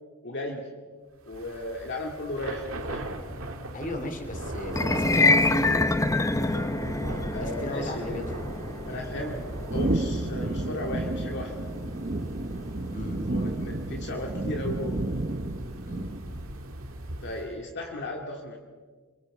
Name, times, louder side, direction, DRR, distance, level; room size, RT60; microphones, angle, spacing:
voice 1, 0.2-0.7 1.3-3.1 7.3-8.1 8.9-9.4 9.7-11.7 13.3-15.0 17.2-18.6, left 1 dB, 55° left, 1 dB, 2.3 m, -35 dB
Thunder / Rain, 1.3-17.6, right 1 dB, 70° right, 2.2 m, -38 dB
voice 2, 3.7-5.7 7.1-8.4 12.9-13.2 15.8-16.1, left 1 dB, 40° left, 5 dB, 2.9 m, -36 dB
sound 1, 4.7-15.0, left 2 dB, 15° left, 0.8 m, -28 dB
sound 2, 9.7-16.5, right 2 dB, 40° right, 0.8 m, -31 dB
29.0 x 23.5 x 4.9 m, 1.5 s
head